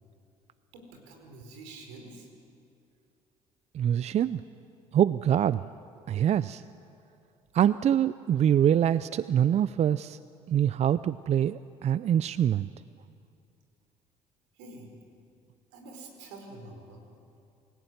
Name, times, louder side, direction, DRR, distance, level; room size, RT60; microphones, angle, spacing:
voice 1, 0.7-2.3 14.5-14.9 15.7-17.0, right 2 dB, 85° right, 3 dB, 4.6 m, -47 dB
voice 2, 3.7-4.4 4.9-5.6 6.1-6.6 7.5-10.2 10.5-12.7, right 10 dB, 50° right, 16 dB, 0.5 m, -24 dB
28.5 x 16.5 x 9.3 m, 2.6 s
supercardioid pair, 70°, 15 cm